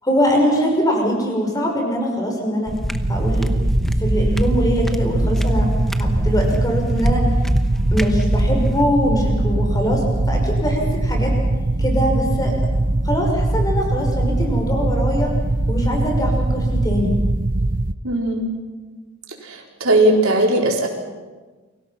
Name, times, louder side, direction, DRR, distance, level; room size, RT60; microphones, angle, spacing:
voice 1, 0.0-2.7 3.1-3.5 4.0-5.7 6.0-7.2 7.9-10.0 10.3-11.3 11.8-12.5 13.0-15.3 15.7-17.1, equal, 15° left, 1 dB, 5.8 m, -22 dB
sound 1, 2.7-8.8, equal, ahead, 1.0 m, -26 dB
sound 2, 2.9-17.9, right 2 dB, 40° right, 0.7 m, -21 dB
voice 2, 18.0-18.5 19.4-20.9, right 1 dB, 75° right, 1 dB, 4.2 m, -18 dB
29.5 x 23.5 x 5.9 m, 1.3 s
head